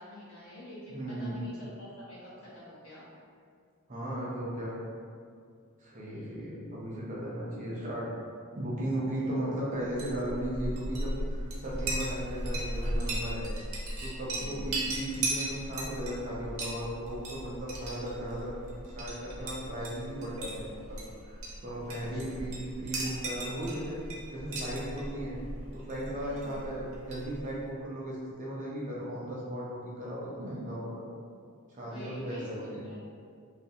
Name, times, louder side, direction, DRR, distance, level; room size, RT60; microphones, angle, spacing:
voice 1, 0.0-3.1 6.0-6.6 14.3-14.7 22.1-22.4 26.3-26.6 31.8-33.0, left 1 dB, 65° left, -8 dB, 0.9 m, -47 dB
voice 2, 0.9-1.4 3.9-4.8 5.8-8.1 8.5-13.5 14.0-24.0 24.3-25.4 25.7-31.0 31.7-32.8, right 1 dB, 35° right, -6 dB, 0.5 m, -36 dB
Chink clink, 9.8-27.6, right 1 dB, 75° right, 0.6 m, -37 dB
2.5 x 2.3 x 2.7 m, 2.2 s
head